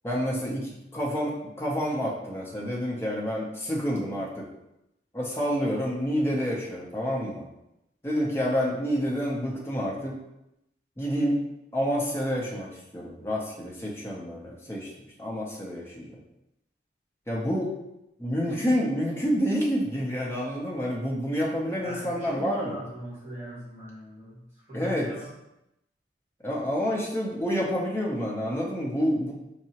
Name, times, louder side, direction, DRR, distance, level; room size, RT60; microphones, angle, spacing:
voice 1, 0.0-4.4 5.1-7.5 8.0-10.2 11.0-11.4 11.7-14.9 15.2-16.2 17.3-17.7 18.2-22.8 24.7-25.1 26.4-29.3, equal, 15° left, -3 dB, 0.6 m, -28 dB
voice 2, 21.7-25.3, equal, 35° right, -7 dB, 1.4 m, -40 dB
4.5 x 2.0 x 2.8 m, 0.88 s
head